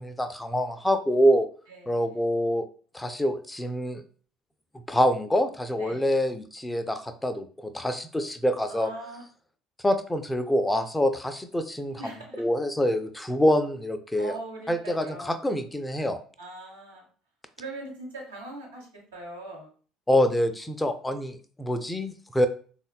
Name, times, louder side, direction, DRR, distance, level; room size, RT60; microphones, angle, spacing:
voice 1, 0.0-1.5 1.9-2.7 2.9-4.0 4.9-8.9 9.8-12.0 12.4-14.3 14.7-16.2 20.1-22.5, equal, 10° left, 9 dB, 0.3 m, -25 dB
voice 2, 1.7-2.2 5.8-6.2 8.7-9.2 12.0-12.4 14.2-15.3 16.4-17.0 17.6-19.7, right 2 dB, 85° right, -2 dB, 0.8 m, -41 dB
3.4 x 2.1 x 2.2 m, 0.42 s
hypercardioid pair, 60°, 0 cm